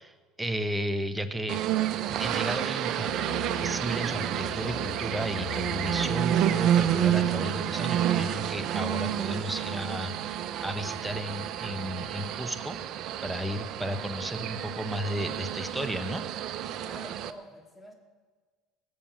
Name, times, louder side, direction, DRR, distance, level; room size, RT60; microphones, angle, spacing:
voice 1, 0.0-1.6 2.2-3.2 3.6-12.8 13.2-16.2, equal, 10° right, 9 dB, 1.2 m, -33 dB
sound 1, 1.5-17.3, right 11 dB, 60° right, 0.7 m, -30 dB
sound 2, 3.0-9.7, left 8 dB, 85° left, 4.9 m, -44 dB
voice 2, 16.8-17.9, equal, 15° left, 3 dB, 2.8 m, -46 dB
19.0 x 7.3 x 7.5 m, 1.4 s
supercardioid pair, 85°, 0 cm